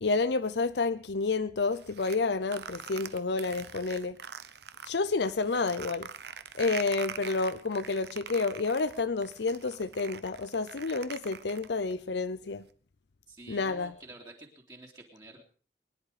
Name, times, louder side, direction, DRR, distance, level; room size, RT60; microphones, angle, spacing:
voice 1, 0.0-4.2 4.9-6.1 6.6-12.6 13.5-13.9, left 3 dB, 75° left, 0.7 m, -30 dB
sound 1, 1.7-4.9 5.3-11.9, right 7 dB, 70° right, 1.0 m, -43 dB
voice 2, 13.3-15.4, right 2 dB, 25° right, 2.6 m, -49 dB
23.0 x 11.0 x 5.0 m
head